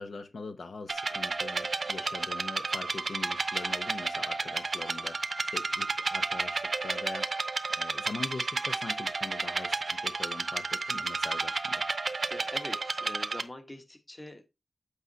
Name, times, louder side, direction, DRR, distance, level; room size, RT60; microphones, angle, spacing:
voice 1, 0.0-7.3 7.8-11.8, left 3 dB, 75° left, 0.9 m, -42 dB
sound 1, 0.9-13.4, right 3 dB, 55° right, 0.6 m, -32 dB
voice 2, 12.3-14.5, left 1 dB, 20° left, 1.3 m, -44 dB
8.2 x 4.8 x 3.9 m
wide cardioid pair, 115°, 0 cm